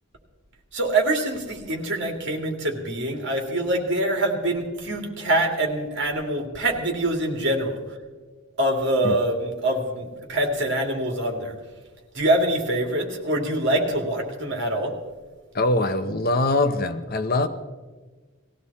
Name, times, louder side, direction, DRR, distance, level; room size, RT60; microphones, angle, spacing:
voice 1, 0.7-7.8 8.6-11.5 12.1-15.0, right 1 dB, 55° right, 2.5 m, -24 dB
voice 2, 15.5-17.5, left 2 dB, 40° left, 0.8 m, -23 dB
20.0 x 15.5 x 4.2 m
head